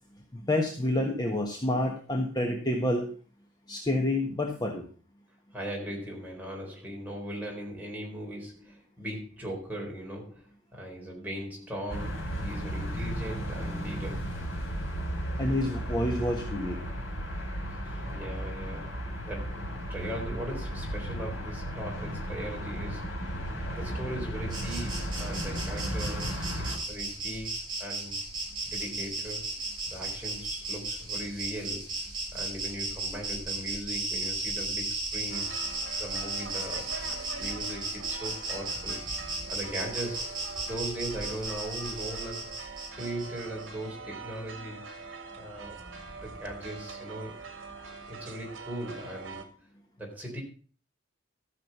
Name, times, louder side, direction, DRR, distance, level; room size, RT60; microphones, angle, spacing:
voice 1, 0.3-3.1 3.7-4.8 15.4-16.8, left 1 dB, 20° left, 1 dB, 1.4 m, -28 dB
voice 2, 5.5-14.3 17.7-23.4 23.7-27.5 27.8-28.2 28.6-29.5 29.9-32.0 32.3-35.5 36.0-36.9 37.4-39.0 39.5-42.5 42.9-44.9 45.3-45.8 46.2-47.4 48.1-49.6 50.0-50.4, right 1 dB, 10° right, -1 dB, 4.0 m, -39 dB
sound 1, 11.9-26.8, equal, 80° left, 4.3 m, -34 dB
Insect, 24.5-43.7, right 2 dB, 25° right, 7.5 m, -35 dB
sound 2, 35.3-49.4, right 4 dB, 65° right, 1.8 m, -43 dB
14.0 x 6.7 x 5.6 m, 0.40 s
head